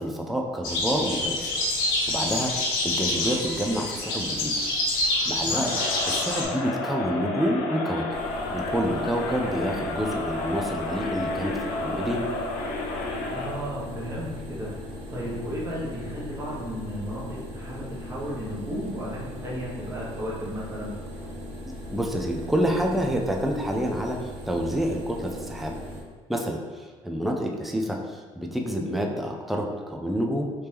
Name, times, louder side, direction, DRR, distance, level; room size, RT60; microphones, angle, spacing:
voice 1, 0.0-1.5 2.1-4.5 5.3-5.7 6.1-8.1 8.5-12.3 21.6-25.7 26.3-30.5, equal, ahead, 1 dB, 0.4 m, -28 dB
sound 1, 0.6-6.4, left 2 dB, 85° left, 1.3 m, -27 dB
Crowd, 5.6-13.7, left 3 dB, 70° left, 0.6 m, -32 dB
sound 2, 8.1-26.0, equal, 75° right, 0.9 m, -39 dB
voice 2, 13.3-14.7 15.1-20.9, equal, 20° right, -6 dB, 1.3 m, -34 dB
3.4 x 2.9 x 3.3 m, 1.5 s
supercardioid pair, 95°, 13 cm